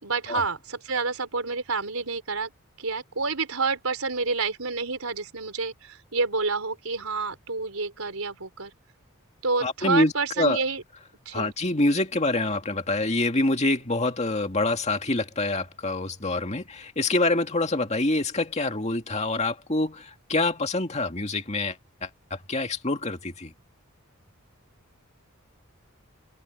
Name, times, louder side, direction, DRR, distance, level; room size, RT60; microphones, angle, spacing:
voice 1, 0.0-2.5 2.8-8.7 9.4-10.8 11.3-11.5, right 4 dB, 85° right, 4.0 m, -29 dB
voice 2, 9.6-10.6 11.3-23.5, left 2 dB, 30° left, 2.2 m, -26 dB
open air
head